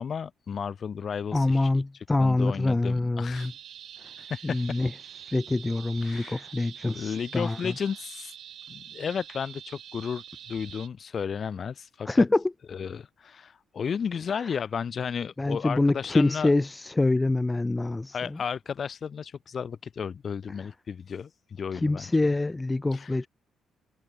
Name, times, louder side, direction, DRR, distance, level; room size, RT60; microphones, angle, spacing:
voice 1, 0.0-1.7 2.2-3.5 4.2-4.8 6.0-6.5 6.9-8.3 8.7-12.3 12.7-16.5 18.1-22.1 22.9-23.1, left 7 dB, 50° left, 3.0 m, -33 dB
voice 2, 1.3-3.5 4.4-4.9 5.3-7.7 12.1-12.4 15.4-18.4 21.7-23.3, left 2 dB, 15° left, 0.3 m, -25 dB
sound 1, 3.3-10.9, right 10 dB, 65° right, 7.8 m, -45 dB
cardioid pair, 90°, 0 cm